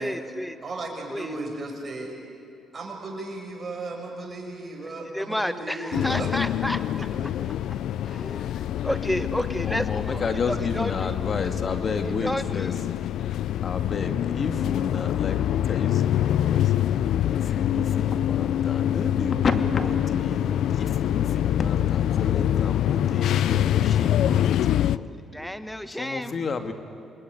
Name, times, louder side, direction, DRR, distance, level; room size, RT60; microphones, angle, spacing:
voice 1, 0.0-0.6 1.1-1.4 5.1-6.9 8.1-11.1 12.2-12.7 25.3-26.3, equal, 5° left, 11 dB, 1.4 m, -31 dB
voice 2, 0.6-2.2 2.7-6.3, right 2 dB, 35° right, 1 dB, 6.7 m, -35 dB
sound 1, 5.9-25.0, left 11 dB, 80° left, 0.5 m, -25 dB
voice 3, 9.6-12.7 13.6-16.7 17.2-25.1 25.9-26.7, left 4 dB, 45° left, 7 dB, 2.3 m, -31 dB
27.0 x 21.0 x 9.8 m, 2.5 s
cardioid pair, 90°, 0 cm